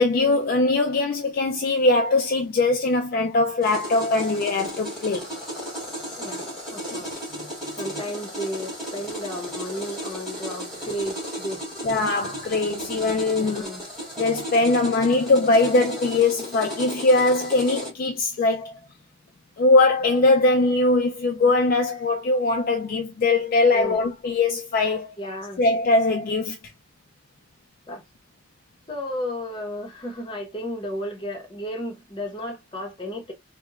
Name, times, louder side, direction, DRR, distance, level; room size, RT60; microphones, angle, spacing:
voice 1, 0.0-5.3 11.8-13.7 14.2-18.7 19.6-25.1 25.6-26.6, left 2 dB, 45° left, 0.3 m, -21 dB
sound 1, 3.6-17.9, equal, ahead, 1.3 m, -35 dB
voice 2, 6.2-7.1 7.8-11.6 13.4-13.8 23.7-24.0 25.2-25.6 27.9-28.0 28.9-33.3, equal, 25° left, 0.7 m, -33 dB
2.8 x 2.1 x 2.2 m
head